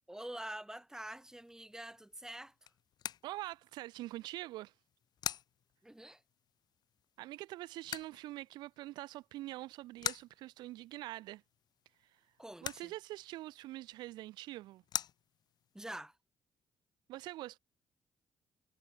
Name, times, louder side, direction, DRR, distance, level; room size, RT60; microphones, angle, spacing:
voice 1, 0.1-2.5 5.8-6.2 12.4-12.9 15.7-16.2, right 1 dB, 10° right, 6.1 m, -46 dB
sound 1, 1.0-15.9, left 10 dB, 70° left, 7.9 m, -47 dB
voice 2, 3.2-4.7 7.2-11.4 12.6-14.8 17.1-17.6, right 17 dB, 90° right, 2.0 m, -44 dB
cardioid pair, 70°, 7 cm